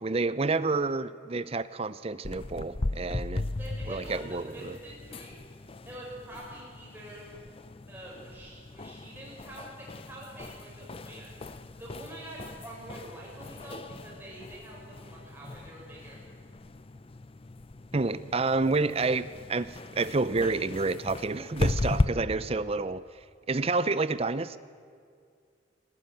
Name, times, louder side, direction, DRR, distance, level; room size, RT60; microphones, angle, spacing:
voice 1, 0.0-3.4 3.9-4.8 17.9-23.2 23.5-24.6, right 3 dB, 30° right, 15 dB, 0.6 m, -29 dB
sound 1, 2.2-22.1, left 2 dB, 30° left, 0.5 m, -37 dB
voice 2, 3.6-5.4 5.8-7.3 7.9-11.3 11.7-16.2, right 1 dB, 10° right, -5 dB, 6.8 m, -46 dB
18.5 x 18.5 x 9.2 m, 2.2 s
head